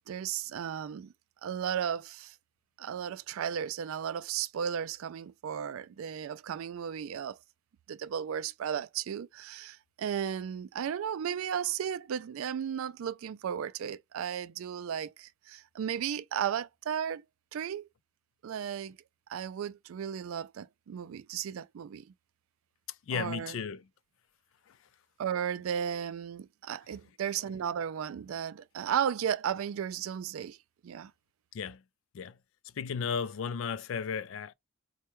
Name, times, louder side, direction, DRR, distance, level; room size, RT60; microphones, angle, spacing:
voice 1, 0.1-1.1 1.4-2.4 2.8-7.4 7.9-17.2 17.5-17.9 18.4-19.0 19.3-22.1 23.1-23.6 25.2-30.6 30.8-31.1, right 8 dB, 75° right, 0.3 m, -34 dB
voice 2, 23.1-23.8 24.7-24.8 31.5-31.8 32.1-32.4 32.8-34.5, left 6 dB, 65° left, 0.3 m, -34 dB
4.4 x 2.2 x 3.0 m
head